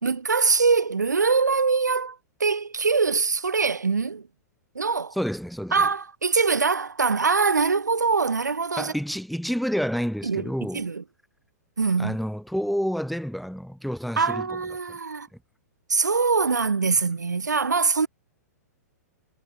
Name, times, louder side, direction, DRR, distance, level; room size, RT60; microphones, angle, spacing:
voice 1, 0.0-4.3 4.7-5.1 5.7-8.9 10.2-10.5 10.7-11.0 11.8-12.1 14.2-15.3 15.9-18.1, right 4 dB, 85° right, 1.7 m, -23 dB
voice 2, 5.1-5.8 8.8-10.9 12.0-14.6 14.9-15.0, equal, ahead, 5.3 m, -29 dB
hypercardioid pair, 110°, 9 cm